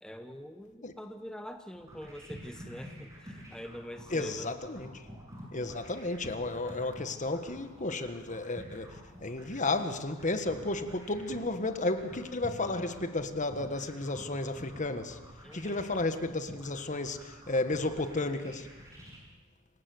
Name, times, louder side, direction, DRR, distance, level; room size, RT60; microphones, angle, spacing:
voice 1, 0.0-4.5 15.4-15.9, equal, 5° left, 6 dB, 1.0 m, -44 dB
sound 1, 1.7-19.2, equal, 15° right, 7.3 m, -49 dB
voice 2, 4.1-5.0 5.5-9.0 9.2-15.2 15.5-18.7, left 2 dB, 40° left, 9 dB, 1.5 m, -33 dB
27.5 x 17.5 x 8.0 m, 1.1 s
head